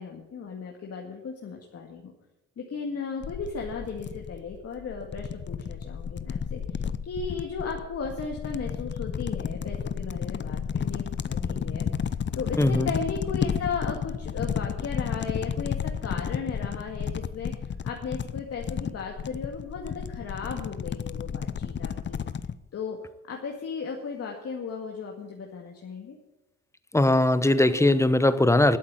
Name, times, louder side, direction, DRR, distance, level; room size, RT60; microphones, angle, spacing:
voice 1, 0.0-2.1 2.6-11.9 12.4-22.2 22.7-23.0 23.3-26.2, left 5 dB, 55° left, 2.0 m, -36 dB
sound 1, 3.2-22.5, left 7 dB, 40° left, 0.7 m, -32 dB
voice 2, 12.6-12.9 26.9-28.8, left 1 dB, 10° left, 0.9 m, -20 dB
12.5 x 8.6 x 9.0 m
cardioid pair, 90°, 30 cm